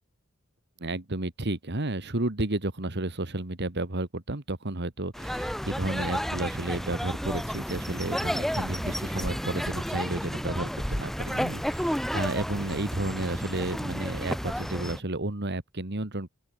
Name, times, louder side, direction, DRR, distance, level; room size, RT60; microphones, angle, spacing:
voice 1, 0.8-16.3, right 2 dB, 50° right, 2.1 m, -32 dB
sound 1, 5.1-15.0, equal, ahead, 1.2 m, -31 dB
open air
head